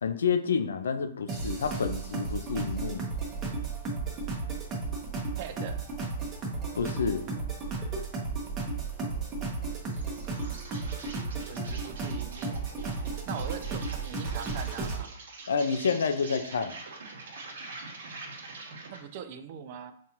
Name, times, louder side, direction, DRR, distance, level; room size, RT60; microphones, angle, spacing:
voice 1, 0.0-3.1 6.8-7.3 15.5-16.7, left 6 dB, 85° left, 8 dB, 0.4 m, -29 dB
sound 1, 1.3-15.0, right 3 dB, 20° right, 0.8 m, -34 dB
voice 2, 5.4-5.8 11.5-12.6 13.3-15.1 18.9-19.9, right 8 dB, 45° right, 9 dB, 0.4 m, -41 dB
Insect, 9.7-19.1, right 3 dB, 70° right, 1.0 m, -45 dB
5.4 x 2.4 x 2.9 m, 0.63 s
hypercardioid pair, 145°, 0 cm